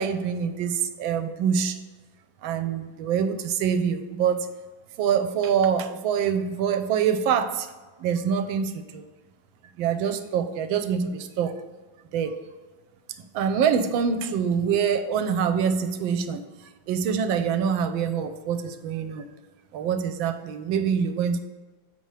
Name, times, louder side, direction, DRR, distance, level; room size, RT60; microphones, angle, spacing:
voice 1, 0.0-1.8 2.4-4.5 5.0-7.7 8.0-9.1 9.8-11.5 12.1-12.4 13.3-16.5 16.9-19.3 19.7-21.4, right 7 dB, 80° right, 9 dB, 1.3 m, -25 dB
7.8 x 5.6 x 3.2 m, 1.3 s
omnidirectional pair, 2.2 m